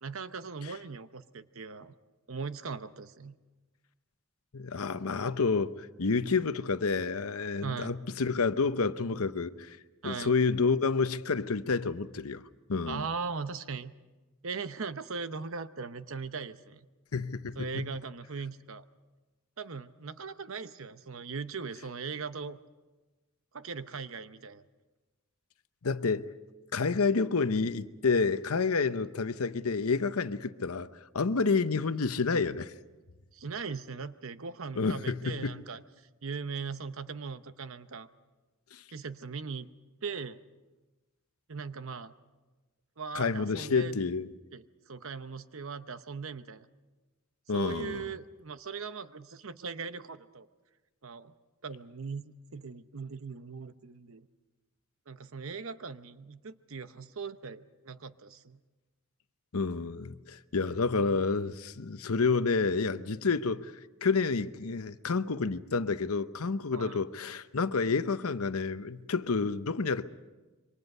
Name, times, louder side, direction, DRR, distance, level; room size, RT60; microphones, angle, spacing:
voice 1, 0.0-1.9 2.3-3.4 7.6-8.0 10.0-10.3 12.9-13.9 14.4-16.9 17.6-18.8 19.6-22.6 23.5-24.6 33.3-35.8 36.2-38.1 38.9-39.7 40.0-40.4 41.5-42.1 43.0-43.9 44.5-46.7 47.5-50.5 51.0-51.3 51.6-54.3 55.1-58.6 66.7-67.0, right 5 dB, 65° right, 0.9 m, -39 dB
voice 2, 4.5-9.8 10.0-12.4 12.7-13.0 17.1-17.8 25.8-26.3 26.7-30.9 31.1-32.7 34.8-35.6 38.7-38.8 43.1-44.3 47.5-48.0 59.5-63.7 64.0-70.0, left 4 dB, 80° left, 0.8 m, -29 dB
27.0 x 24.0 x 5.5 m
head